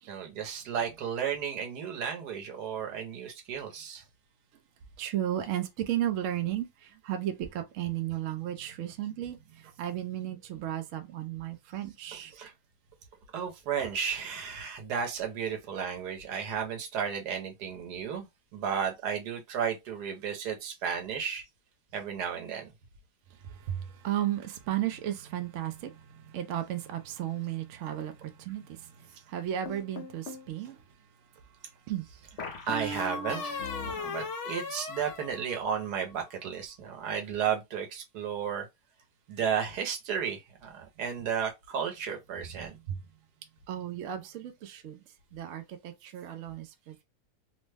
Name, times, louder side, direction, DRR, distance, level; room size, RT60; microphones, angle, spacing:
voice 1, 0.1-4.0 12.1-12.5 13.3-18.3 18.5-21.4 21.9-22.7 32.7-38.7 39.3-42.8, right 7 dB, 85° right, 1.3 m, -33 dB
voice 2, 5.0-12.3 23.4-31.0 31.3-31.5 31.9-32.1 32.4-32.5 33.8-34.0 42.9-43.0 43.7-45.0 45.3-47.0, right 11 dB, 70° right, 0.8 m, -34 dB
sound 1, 29.7-30.5 32.4-36.0, left 3 dB, 55° left, 0.9 m, -37 dB
3.0 x 2.1 x 3.3 m
omnidirectional pair, 1.7 m